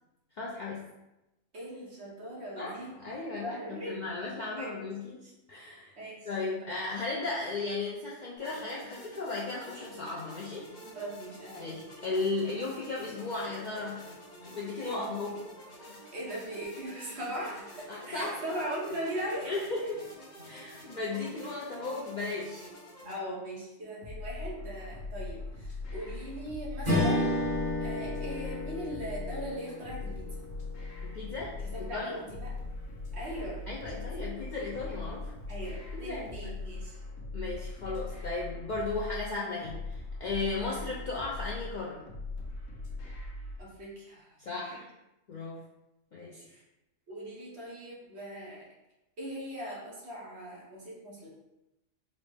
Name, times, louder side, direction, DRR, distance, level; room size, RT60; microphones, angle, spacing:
voice 1, 0.4-0.8 2.6-2.7 3.0-3.6 3.9-5.9 6.3-10.7 11.6-14.0 14.4-15.4 17.9-18.3 19.5-20.0 20.5-22.7 31.0-31.6 31.9-32.2 33.7-35.3 35.9-36.5 37.3-42.1 44.5-44.9 45.3-45.6 46.1-46.4, left 3 dB, 55° left, -5 dB, 0.5 m, -35 dB
voice 2, 1.5-2.9 3.4-4.0 4.6-4.8 6.0-6.3 10.9-11.7 14.8-15.4 16.1-19.6 23.0-27.4 27.8-30.4 31.7-32.5 33.1-33.6 33.9-34.2 35.5-37.0 40.6-40.7 43.6-44.3 44.7-44.8 46.4-46.6 47.1-48.7 49.2-51.3, right 1 dB, 60° right, -5 dB, 1.2 m, -39 dB
sound 1, 8.4-23.1, equal, 40° left, 0.9 m, -49 dB
sound 2, 24.0-43.6, left 3 dB, 90° left, 1.1 m, -40 dB
Strum, 26.8-31.5, left 1 dB, 35° right, 1.2 m, -32 dB
4.0 x 2.0 x 3.3 m, 0.95 s
omnidirectional pair, 1.3 m